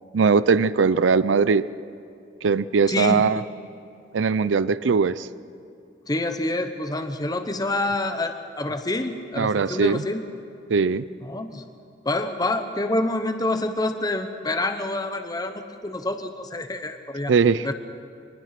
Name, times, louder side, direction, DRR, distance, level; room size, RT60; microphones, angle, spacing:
voice 1, 0.1-1.6 2.4-3.4 4.1-5.3 9.4-10.0 10.7-11.0 17.3-17.7, right 5 dB, 90° right, 17 dB, 0.5 m, -20 dB
voice 2, 2.9-3.4 6.1-10.2 11.2-11.6 12.0-17.3 17.6-17.7, left 2 dB, 20° left, 7 dB, 0.9 m, -27 dB
23.5 x 20.5 x 5.9 m, 2.5 s
head